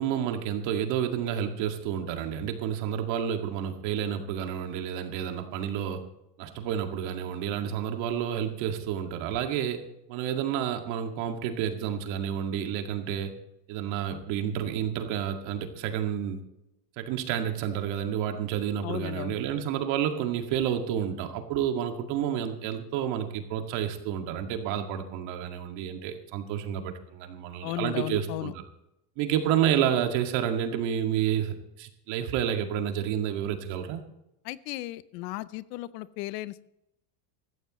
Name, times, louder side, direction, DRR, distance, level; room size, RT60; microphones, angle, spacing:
voice 1, 0.0-6.0 6.4-9.8 10.1-13.3 13.7-16.4 17.0-28.5 29.2-34.0, right 9 dB, 60° right, 5 dB, 2.2 m, -30 dB
voice 2, 18.8-19.4 27.6-28.5 34.4-36.6, left 17 dB, 75° left, 17 dB, 0.8 m, -35 dB
16.5 x 14.0 x 3.1 m, 0.87 s
supercardioid pair, 130°, 49 cm